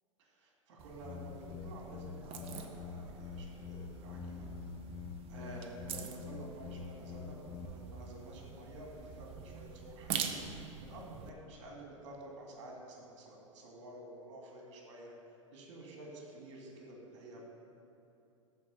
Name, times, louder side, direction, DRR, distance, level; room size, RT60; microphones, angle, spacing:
voice 1, 0.2-4.5 5.3-15.1 15.5-17.4, right 1 dB, 60° right, -1 dB, 2.5 m, -50 dB
sound 1, 0.8-11.3, right 7 dB, 35° right, 0.8 m, -45 dB
sound 2, 1.0-7.7, left 6 dB, 25° left, 0.6 m, -46 dB
13.5 x 4.7 x 5.8 m, 2.9 s
figure-of-eight pair, 95°, 17 cm